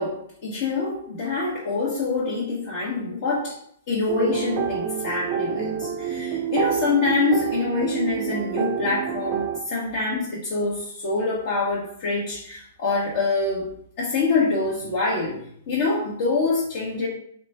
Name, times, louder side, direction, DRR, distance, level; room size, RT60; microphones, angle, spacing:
voice 1, 0.0-3.6 3.9-17.1, left 3 dB, 45° left, -8 dB, 1.2 m, -25 dB
sound 1, 4.1-9.6, right 8 dB, 25° right, 0.5 m, -27 dB
3.3 x 2.9 x 4.3 m, 0.66 s
hypercardioid pair, 155°, 0 cm